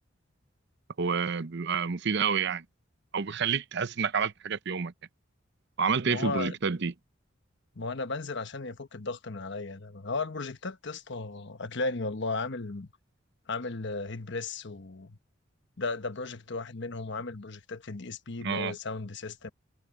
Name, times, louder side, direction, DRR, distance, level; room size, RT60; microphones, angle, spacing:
voice 1, 1.0-2.6 3.1-4.9 5.8-6.9 18.4-18.7, right 6 dB, 60° right, 0.7 m, -29 dB
voice 2, 6.1-6.6 7.7-12.9 13.5-15.2 15.8-19.5, left 3 dB, 65° left, 1.2 m, -35 dB
head